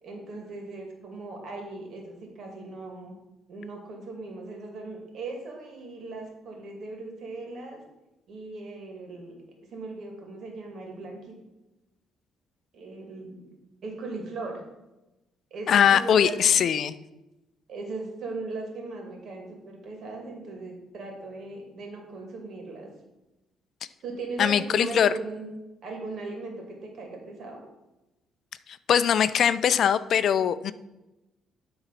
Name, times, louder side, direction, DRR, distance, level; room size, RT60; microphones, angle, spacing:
voice 1, 0.0-3.1 3.5-7.8 8.3-9.3 9.7-11.3 12.7-13.4 13.8-14.6 15.5-16.4 17.7-22.9 24.0-25.5 25.8-27.6, right 3 dB, 55° right, 1 dB, 2.5 m, -38 dB
voice 2, 15.7-16.9 24.4-25.1 28.9-30.7, left 8 dB, 55° left, 14 dB, 0.4 m, -21 dB
11.5 x 4.0 x 5.8 m, 0.99 s
cardioid pair, 125°, 0 cm